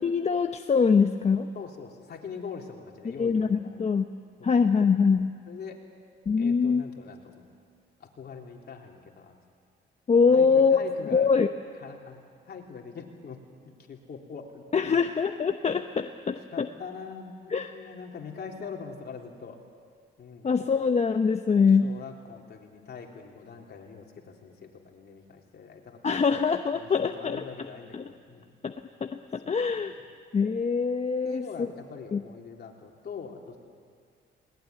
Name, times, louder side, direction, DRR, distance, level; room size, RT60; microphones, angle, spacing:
voice 1, 0.0-1.5 3.2-4.1 4.4-5.3 6.3-6.8 10.1-10.8 11.1-11.5 14.7-16.7 17.5-17.8 20.4-21.9 26.0-27.4 27.9-28.0 28.6-28.7 29.0-30.0 30.3-31.7 32.1-32.2, left 5 dB, 35° left, 7 dB, 0.9 m, -23 dB
voice 2, 1.5-3.8 4.4-4.5 5.5-5.8 6.3-7.5 8.0-9.4 10.3-11.3 11.8-15.1 16.5-19.6 20.2-20.5 21.5-26.3 26.7-28.6 29.4-29.6 31.2-33.6, left 6 dB, 55° left, 1 dB, 3.4 m, -43 dB
21.0 x 19.5 x 9.6 m, 2.1 s
cardioid pair, 90°, 20 cm